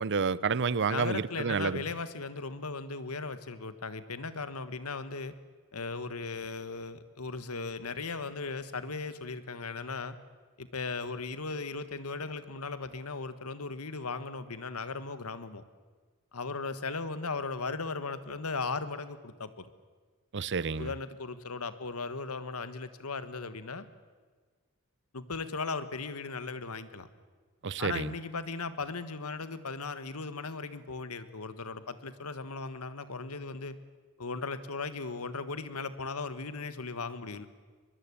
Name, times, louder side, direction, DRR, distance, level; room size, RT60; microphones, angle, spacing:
voice 1, 0.0-1.8 20.3-20.9 27.6-28.1, right 5 dB, 55° right, 0.6 m, -30 dB
voice 2, 0.9-5.3 5.7-10.1 10.6-15.6 16.3-19.7 20.8-23.8 25.1-27.1 27.8-33.7 34.2-37.4, left 4 dB, 85° left, 1.6 m, -37 dB
22.5 x 22.0 x 8.5 m
head